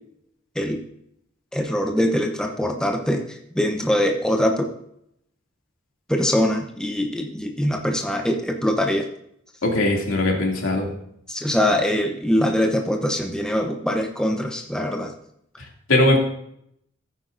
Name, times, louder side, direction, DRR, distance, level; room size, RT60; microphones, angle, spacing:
voice 1, 1.5-4.7 6.1-9.1 11.3-15.1, equal, 5° left, 2 dB, 0.8 m, -23 dB
voice 2, 9.6-10.9 15.9-16.2, left 1 dB, 90° left, 0 dB, 2.6 m, -19 dB
15.0 x 9.1 x 2.6 m, 0.73 s
head